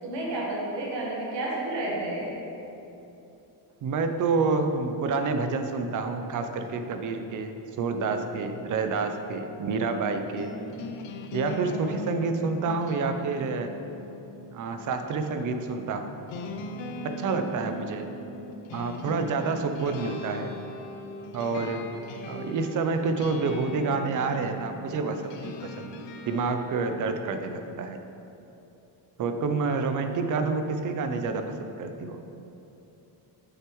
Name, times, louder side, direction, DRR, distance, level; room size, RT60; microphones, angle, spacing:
voice 1, 0.0-2.3, right 1 dB, 80° right, -3 dB, 1.6 m, -31 dB
voice 2, 3.8-10.5 11.3-13.7 14.5-16.1 17.0-18.1 18.7-20.5 21.3-21.9 22.3-28.0 29.2-32.2, right 4 dB, 45° right, 7 dB, 0.5 m, -28 dB
sound 1, 7.8-27.0, left 2 dB, 85° left, 0.6 m, -41 dB
9.0 x 6.9 x 3.1 m, 2.9 s
cardioid pair, 175°, 42 cm